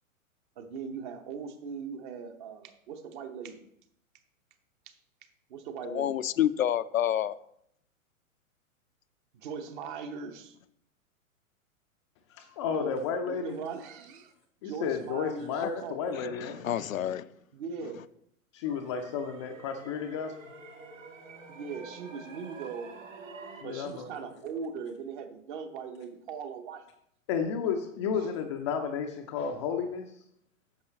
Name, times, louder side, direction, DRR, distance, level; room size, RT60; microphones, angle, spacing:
voice 1, 0.6-3.7 4.9-5.0 5.5-6.1 9.3-10.6 12.7-12.9 13.2-14.3 14.6-16.0 17.5-18.0 21.5-23.0 23.6-26.9 28.3-28.4, right 5 dB, 35° right, 1.0 m, -39 dB
voice 2, 5.8-7.4 15.6-15.7 16.1-17.3, left 11 dB, 70° left, 0.5 m, -29 dB
voice 3, 12.3-13.6 14.6-16.6 18.5-20.5 23.6-24.1 27.3-30.1, left 6 dB, 20° left, 0.4 m, -32 dB
sound 1, 18.6-23.6, right 3 dB, 65° right, 1.8 m, -47 dB
9.5 x 6.6 x 3.2 m
figure-of-eight pair, 105°, 42 cm